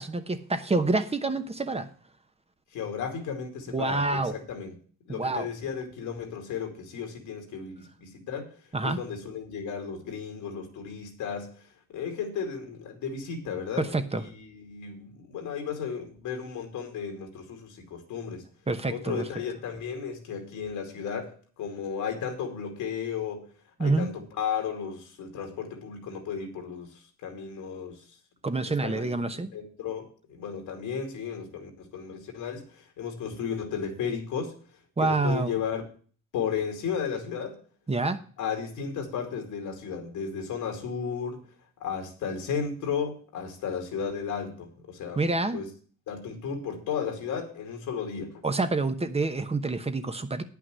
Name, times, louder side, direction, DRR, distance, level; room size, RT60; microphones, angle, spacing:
voice 1, 0.0-1.9 3.7-4.4 5.1-5.5 8.7-9.0 13.8-14.2 18.7-19.2 23.8-24.1 28.4-29.5 35.0-35.6 37.9-38.2 45.2-45.6 48.4-50.4, right 3 dB, 20° right, 1.0 m, -27 dB
voice 2, 2.7-4.8 5.1-8.5 8.8-11.5 11.9-18.4 18.9-23.5 23.8-28.0 28.8-29.2 29.5-34.6 35.0-35.8 36.3-37.6 38.4-41.4 41.8-45.7 46.1-48.4, left 6 dB, 85° left, 2.4 m, -34 dB
9.6 x 5.8 x 7.5 m
cardioid pair, 90°, 30 cm